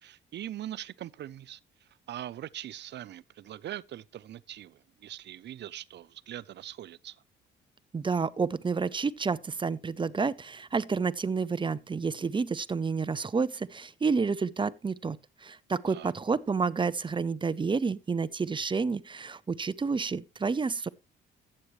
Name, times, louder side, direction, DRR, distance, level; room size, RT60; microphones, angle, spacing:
voice 1, 0.0-7.2 15.9-16.1, right 12 dB, 60° right, 0.6 m, -42 dB
voice 2, 7.9-20.9, right 5 dB, 25° right, 0.7 m, -30 dB
14.0 x 8.7 x 3.2 m
cardioid pair, 90°, 20 cm